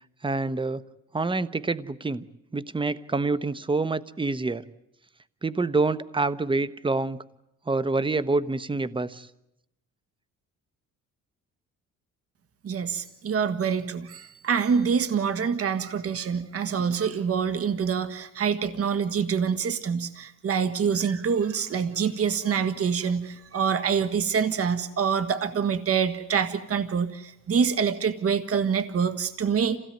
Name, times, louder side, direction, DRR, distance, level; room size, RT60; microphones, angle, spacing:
voice 1, 0.2-0.8 1.1-2.2 2.5-4.6 5.4-7.2 7.7-9.3, right 3 dB, 15° right, 16 dB, 1.0 m, -27 dB
voice 2, 12.6-29.8, right 6 dB, 45° right, 12 dB, 1.6 m, -26 dB
27.0 x 17.0 x 9.2 m, 0.83 s
cardioid pair, 100°, 33 cm